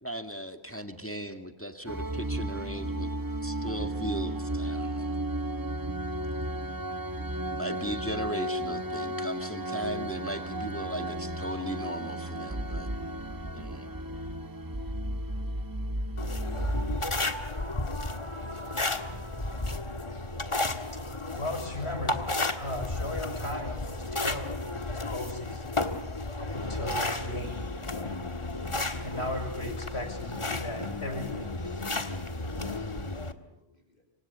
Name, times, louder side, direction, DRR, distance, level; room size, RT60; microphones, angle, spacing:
voice 1, 0.0-3.1 3.4-5.2 7.6-12.9 13.5-13.9, equal, 10° left, 7 dB, 1.9 m, -37 dB
sound 1, 1.9-17.0, right 1 dB, 20° right, 1.1 m, -33 dB
sound 2, 16.2-33.3, left 2 dB, 30° left, 1.6 m, -33 dB
voice 2, 21.3-22.2 22.5-25.8 26.4-27.7 29.0-31.5, left 1 dB, 85° left, 5 dB, 6.6 m, -37 dB
voice 3, 33.4-34.0, left 2 dB, 55° left, 4 dB, 7.3 m, -60 dB
27.0 x 25.0 x 8.6 m, 0.78 s
omnidirectional pair, 1.1 m